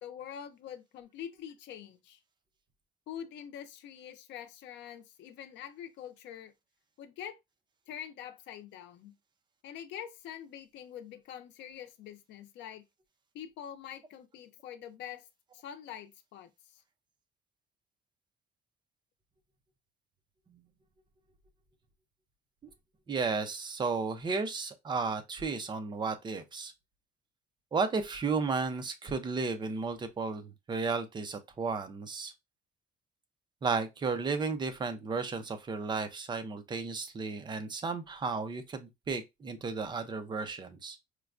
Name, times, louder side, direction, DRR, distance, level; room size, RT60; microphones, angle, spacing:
voice 1, 0.0-2.2 3.1-6.5 7.0-7.4 7.9-9.1 9.6-12.8 13.3-15.3 15.5-16.8, left 9 dB, 85° left, 0.6 m, -45 dB
voice 2, 23.1-26.7 27.7-32.3 33.6-41.0, right 4 dB, 25° right, 0.5 m, -33 dB
4.4 x 2.2 x 2.5 m
cardioid pair, 155°, 18 cm